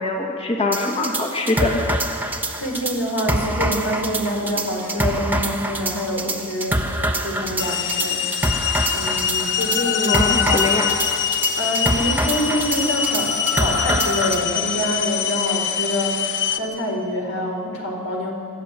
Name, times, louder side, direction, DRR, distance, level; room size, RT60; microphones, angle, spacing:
voice 1, 0.0-1.8 10.1-10.9, left 2 dB, 30° left, 0 dB, 2.1 m, -23 dB
sound 1, 0.7-14.4, right 1 dB, 10° right, 1.2 m, -25 dB
voice 2, 2.6-8.3 8.9-10.3 11.6-18.3, equal, 85° left, 1 dB, 4.4 m, -26 dB
sound 2, 7.6-16.6, left 8 dB, 60° left, 1.1 m, -23 dB
25.5 x 12.5 x 9.3 m, 2.6 s
head